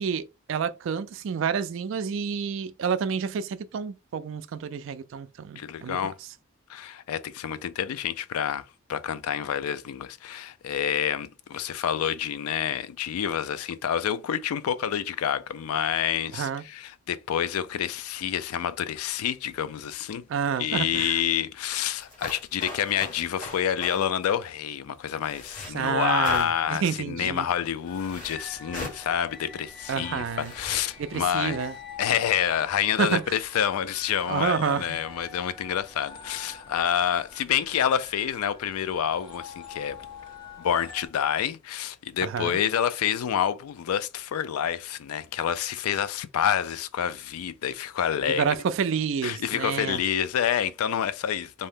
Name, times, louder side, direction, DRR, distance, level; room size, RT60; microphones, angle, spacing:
voice 1, 0.0-6.0 16.3-16.6 20.3-21.2 25.7-27.5 29.9-30.5 31.0-31.8 33.0-33.4 34.3-35.0 42.2-42.6 48.2-50.0, right 6 dB, 60° right, 0.3 m, -29 dB
voice 2, 5.6-6.2 6.7-8.6 8.9-20.3 20.6-31.6 32.0-40.0 40.6-48.5 49.2-51.7, left 9 dB, 85° left, 0.3 m, -28 dB
sound 1, 22.0-24.0 25.2-25.7 26.2-26.7 27.9-28.4 28.7-29.0 30.3-30.8, left 2 dB, 35° left, 1.0 m, -39 dB
sound 2, 27.8-41.1, left 5 dB, 20° left, 0.7 m, -45 dB
2.6 x 2.0 x 3.4 m
head